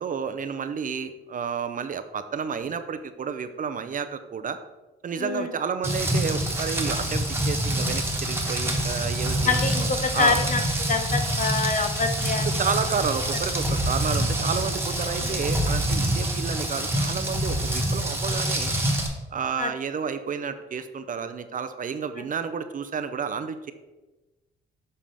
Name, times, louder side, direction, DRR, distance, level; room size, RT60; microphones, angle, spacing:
voice 1, 0.0-4.6 5.0-9.5 10.1-10.4 12.6-18.7 19.3-23.7, right 6 dB, 45° right, 10 dB, 0.5 m, -31 dB
voice 2, 5.2-5.5 9.4-10.6 10.9-12.6 15.2-15.5 19.6-19.7, left 4 dB, 40° left, 8 dB, 0.8 m, -26 dB
Rain, 5.8-19.1, right 1 dB, 10° right, 1.5 m, -26 dB
7.4 x 5.5 x 3.4 m, 1.1 s
cardioid pair, 90°, 20 cm